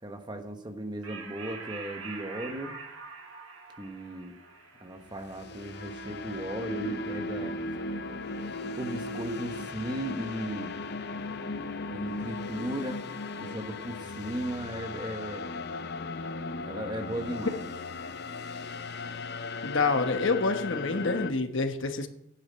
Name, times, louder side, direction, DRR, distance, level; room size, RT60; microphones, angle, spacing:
voice 1, 0.0-2.7 3.8-4.4 4.8-7.6 8.8-10.7 11.9-13.0 13.4-15.5 16.6-17.7, right 1 dB, 20° right, 6 dB, 1.2 m, -36 dB
sound 1, 1.0-7.9, right 4 dB, 85° right, 4.3 m, -46 dB
sound 2, 5.1-21.3, left 3 dB, 55° left, 0.7 m, -37 dB
voice 2, 19.6-22.1, left 3 dB, 70° left, 7 dB, 1.2 m, -27 dB
10.0 x 8.9 x 7.5 m, 0.76 s
head